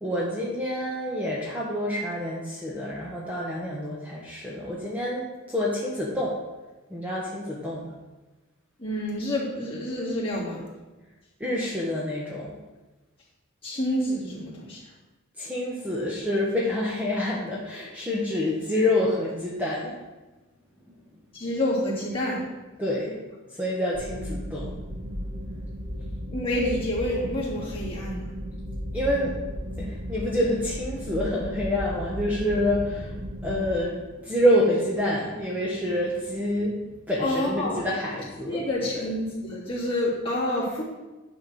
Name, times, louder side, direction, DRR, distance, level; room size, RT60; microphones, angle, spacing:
voice 1, 0.0-6.3 6.9-7.9 11.4-12.6 15.4-20.0 22.8-23.2 23.5-24.7 28.9-33.2 33.4-36.8 37.1-38.6, left 1 dB, 5° right, -5 dB, 1.1 m, -27 dB
voice 2, 8.8-10.6 13.6-14.8 21.3-22.5 26.3-28.3 37.2-37.8 38.4-40.8, left 1 dB, 25° left, -7 dB, 2.6 m, -28 dB
sound 1, 23.9-33.7, equal, 60° right, 2.0 m, -35 dB
10.0 x 4.3 x 6.3 m, 1.1 s
head